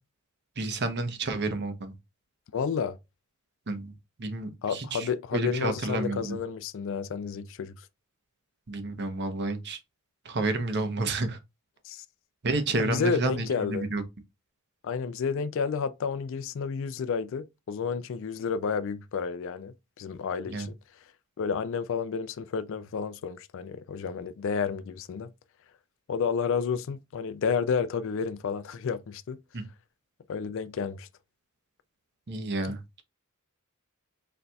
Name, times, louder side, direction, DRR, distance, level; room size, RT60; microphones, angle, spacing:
voice 1, 0.6-1.9 3.7-3.9 4.2-6.4 8.7-9.8 10.2-11.4 12.4-14.0 20.5-20.7 29.5-29.6 32.3-32.8, right 2 dB, 55° right, 0.8 m, -30 dB
voice 2, 2.5-3.0 4.6-7.7 11.8-12.0 12.8-13.9 14.8-20.8 21.4-25.3 26.1-29.4 30.3-31.1, left 6 dB, 65° left, 0.4 m, -31 dB
4.3 x 4.0 x 2.3 m
head